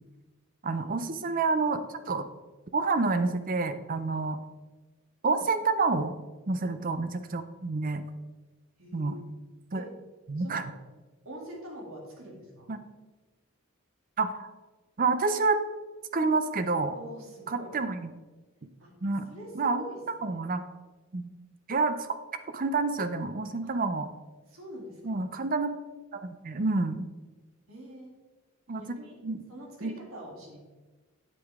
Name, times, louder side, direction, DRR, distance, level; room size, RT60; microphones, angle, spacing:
voice 1, 0.6-1.8 2.1-2.2 2.7-4.4 5.2-6.2 6.5-8.0 8.9-9.2 9.7-9.8 10.3-10.6 12.7-12.8 14.2-14.5 15.0-15.6 16.1-16.9 17.5-18.0 19.0-19.3 19.6-19.8 20.2-20.6 21.1-21.3 21.7-22.2 22.5-24.1 25.0-25.7 26.1-27.0 28.7-28.8 29.2-29.4 29.8-29.9, right 3 dB, 40° right, 10 dB, 0.6 m, -28 dB
voice 2, 1.2-1.5 6.7-6.8 8.8-9.3 9.7-9.8 10.4-10.6 11.2-12.7 16.9-17.7 18.8-18.9 19.3-20.4 23.6-23.7 24.5-25.2 27.7-28.2 28.7-29.1 29.5-30.6, right 1 dB, 80° right, -2 dB, 2.6 m, -45 dB
8.5 x 7.8 x 3.6 m, 1.2 s
head